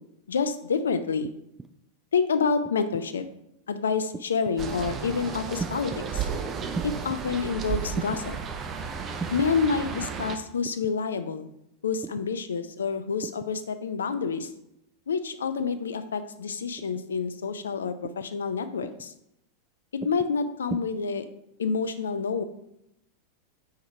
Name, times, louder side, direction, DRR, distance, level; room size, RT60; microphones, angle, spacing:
voice 1, 0.3-1.3 2.1-3.2 3.7-6.3 6.8-8.4 9.3-11.5 11.8-14.5 15.1-19.1 19.9-21.3 21.6-22.4, left 5 dB, 70° left, 10 dB, 0.5 m, -28 dB
sound 1, 1.2-1.7 2.6-3.1 4.1-4.6 5.6-6.0 6.7-7.2 7.9-8.3 9.2-9.5 10.6-11.0 12.0-12.3 13.2-13.5 14.3-14.6 15.6-15.9 16.8-17.1 18.0-18.3 18.8-19.1 20.0-20.3 20.7-20.8, right 4 dB, 10° right, 0.3 m, -37 dB
sound 2, 4.6-10.4, right 6 dB, 25° right, 0.7 m, -33 dB
4.7 x 4.5 x 5.5 m, 0.81 s
figure-of-eight pair, 90°, 0 cm